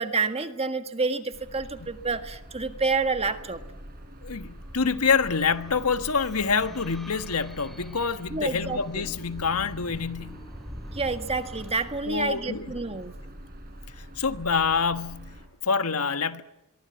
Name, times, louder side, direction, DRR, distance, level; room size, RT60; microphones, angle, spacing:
voice 1, 0.0-3.6 8.3-9.0 10.9-13.1, right 4 dB, 25° right, 1.6 m, -28 dB
sound 1, 1.3-15.5, equal, 45° right, 4.8 m, -44 dB
sound 2, 3.9-13.5, equal, ahead, 2.5 m, -46 dB
voice 2, 4.2-10.5 12.1-12.7 14.2-16.4, left 5 dB, 80° left, 1.4 m, -26 dB
24.5 x 23.0 x 9.4 m
head